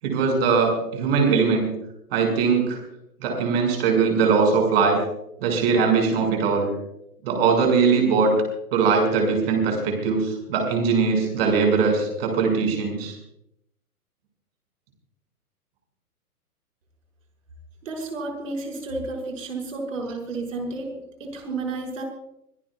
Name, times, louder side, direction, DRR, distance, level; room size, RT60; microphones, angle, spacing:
voice 1, 0.0-1.7 2.1-2.8 3.2-5.0 5.4-6.7 7.2-8.3 8.7-13.2, right 5 dB, 40° right, 2 dB, 6.6 m, -21 dB
voice 2, 17.8-20.9 21.2-22.0, right 3 dB, 55° right, 1 dB, 6.2 m, -31 dB
25.5 x 18.5 x 2.5 m, 0.79 s
figure-of-eight pair, 120°, 46 cm